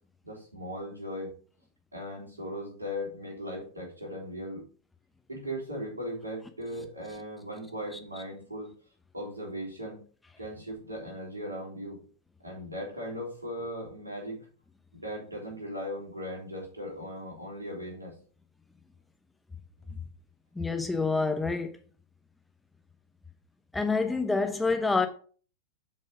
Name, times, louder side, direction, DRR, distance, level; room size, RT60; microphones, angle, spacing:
voice 1, 0.2-1.3 1.9-4.6 5.3-8.7 9.1-10.0 10.4-12.0 12.4-14.4 14.9-18.1 19.8-20.0, equal, 80° right, 3.8 m, -38 dB
voice 2, 20.5-21.7 23.7-25.1, left 4 dB, 5° left, 0.9 m, -27 dB
7.2 x 5.5 x 5.3 m
figure-of-eight pair, 90°, 0 cm